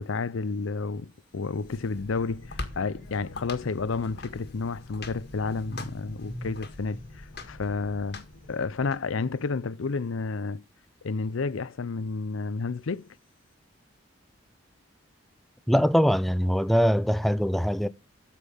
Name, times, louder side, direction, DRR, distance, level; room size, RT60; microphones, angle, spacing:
voice 1, 0.0-10.6 11.0-13.1, left 4 dB, 80° left, 0.6 m, -31 dB
sound 1, 1.5-9.0, left 2 dB, 55° left, 1.8 m, -42 dB
voice 2, 15.7-17.9, equal, ahead, 0.4 m, -22 dB
8.3 x 7.4 x 5.4 m
head